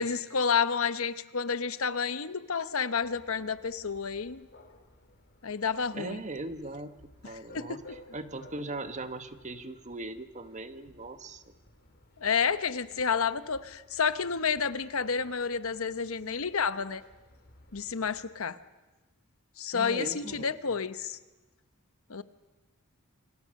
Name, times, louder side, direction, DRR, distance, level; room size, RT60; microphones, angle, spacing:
voice 1, 0.0-4.5 5.4-6.2 7.5-7.8 12.2-17.0 17.7-18.6 19.6-21.2 22.1-22.2, left 6 dB, 65° left, 13 dB, 1.0 m, -30 dB
sound 1, 3.0-18.3, left 1 dB, 50° left, 4.1 m, -57 dB
voice 2, 5.9-11.5 19.7-20.8, right 2 dB, 35° right, 10 dB, 1.3 m, -40 dB
28.5 x 25.5 x 6.5 m, 1.2 s
head